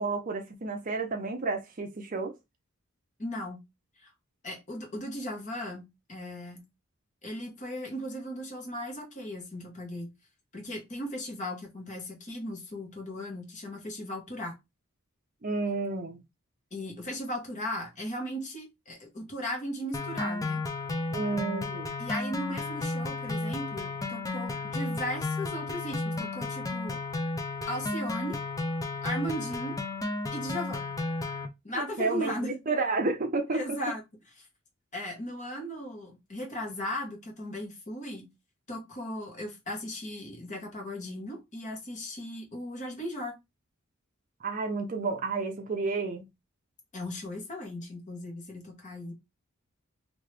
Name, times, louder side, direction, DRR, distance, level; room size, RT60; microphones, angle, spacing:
voice 1, 0.0-2.3 15.4-16.2 21.1-21.9 32.0-33.6 44.4-46.2, right 3 dB, 40° right, 0.5 m, -31 dB
voice 2, 3.2-3.6 4.0-4.1 4.4-6.6 7.2-10.1 10.5-14.6 16.7-20.6 22.0-27.0 27.7-28.4 29.0-29.8 30.3-30.9 31.6-32.5 33.5-34.0 34.4-34.5 34.9-38.3 38.7-43.3 46.9-49.1, left 1 dB, 35° left, 1.3 m, -37 dB
sound 1, 19.9-31.5, left 3 dB, 15° left, 0.4 m, -33 dB
3.1 x 2.8 x 3.2 m
head